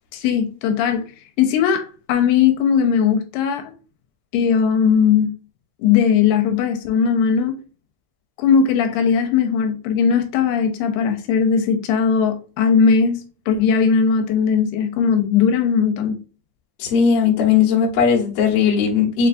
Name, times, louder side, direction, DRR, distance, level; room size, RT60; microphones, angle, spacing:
voice 1, 0.1-1.0 1.4-3.7 4.3-5.3 5.8-7.6 8.4-16.2, left 7 dB, 85° left, 2.5 m, -18 dB
voice 2, 16.8-19.3, left 6 dB, 65° left, 1.5 m, -17 dB
6.8 x 2.3 x 2.5 m
omnidirectional pair, 4.7 m